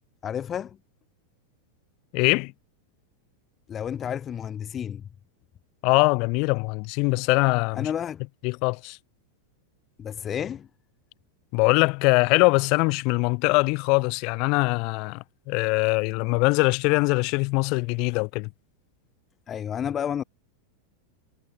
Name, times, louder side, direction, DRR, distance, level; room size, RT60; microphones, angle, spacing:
voice 1, 0.2-0.8 3.7-5.0 7.7-8.2 10.0-10.7 19.5-20.2, left 9 dB, 25° left, 4.8 m, -31 dB
voice 2, 2.1-2.5 5.8-7.9 8.4-9.0 11.5-18.5, left 30 dB, 45° left, 6.3 m, -22 dB
figure-of-eight pair, 90°, 0 cm